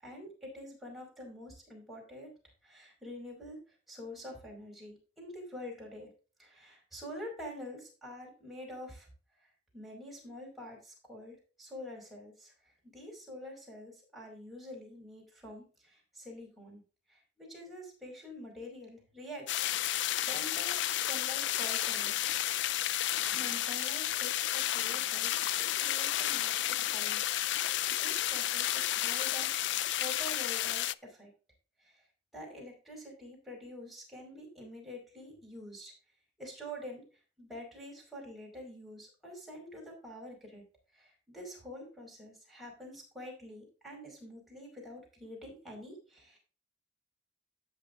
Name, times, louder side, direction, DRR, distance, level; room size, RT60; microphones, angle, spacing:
voice 1, 0.0-2.3 2.6-6.1 6.4-9.1 9.7-16.8 17.1-20.7 21.0-22.4 23.3-25.3 25.8-27.2 27.5-31.3 31.8-32.0 32.3-35.9 36.4-37.0 37.4-40.6 40.9-46.4, left 1 dB, ahead, -3 dB, 5.0 m, -47 dB
sound 1, 19.5-30.9, left 13 dB, 65° left, 0.4 m, -32 dB
17.0 x 6.5 x 2.6 m, 0.36 s
head